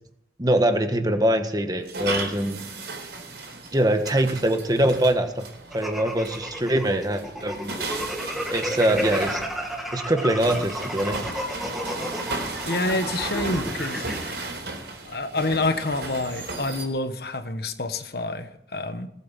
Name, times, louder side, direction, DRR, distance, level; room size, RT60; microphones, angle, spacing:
voice 1, 0.4-2.6 3.7-5.4 5.7-7.7 8.5-9.4 9.9-11.2, right 1 dB, 20° right, 7 dB, 1.4 m, -23 dB
sound 1, 1.8-16.8, right 3 dB, 75° right, 4.2 m, -35 dB
sound 2, 5.7-14.3, equal, ahead, 1.6 m, -32 dB
voice 2, 12.6-14.1 15.0-19.1, left 2 dB, 60° left, 9 dB, 1.3 m, -27 dB
19.0 x 8.6 x 7.6 m, 0.77 s
head